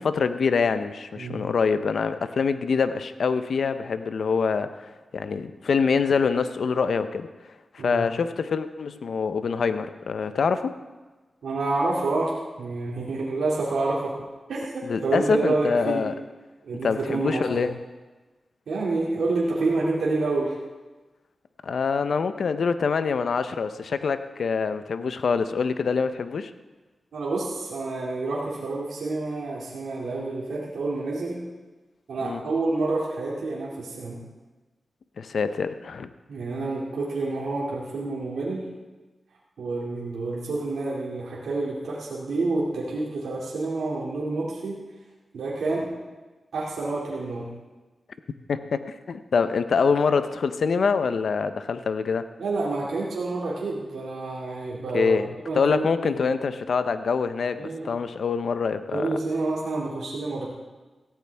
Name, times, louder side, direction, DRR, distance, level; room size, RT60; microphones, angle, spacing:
voice 1, 0.0-4.8 5.1-7.3 7.7-10.7 14.8-16.1 16.8-17.7 21.6-26.5 32.2-32.4 35.2-36.1 48.5-48.8 49.1-52.3 54.9-55.3 55.5-59.1, left 5 dB, 80° left, 11 dB, 0.7 m, -25 dB
voice 2, 11.4-12.3 12.6-14.1 14.5-16.0 16.6-17.6 18.7-20.5 27.1-31.4 32.1-34.2 36.3-38.6 39.6-44.8 45.3-45.9 46.5-47.5 52.4-55.2 55.5-56.1 57.6-57.9 58.9-60.5, right 3 dB, 90° right, -6 dB, 2.4 m, -28 dB
18.0 x 15.0 x 3.5 m, 1.2 s
cardioid pair, 45°, 0 cm